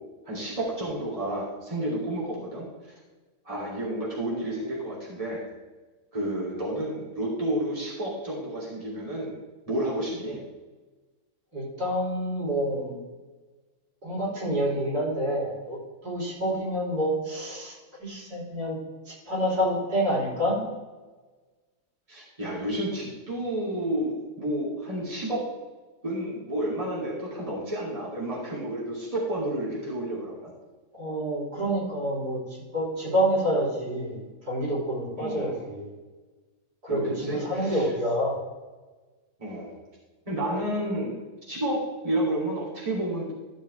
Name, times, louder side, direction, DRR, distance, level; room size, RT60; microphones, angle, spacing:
voice 1, 0.2-2.7 3.4-5.4 6.1-9.3 9.7-10.4 22.1-25.4 26.0-30.5 35.2-35.6 36.9-37.9 39.4-39.7 40.3-41.1 41.5-43.3, right 1 dB, 20° right, -6 dB, 2.9 m, -30 dB
voice 2, 11.5-12.9 14.0-15.8 16.0-18.8 19.1-20.6 30.9-32.4 32.7-35.9 36.8-38.4, equal, 80° right, -5 dB, 4.2 m, -28 dB
14.0 x 7.0 x 3.4 m, 1.3 s
omnidirectional pair, 1.6 m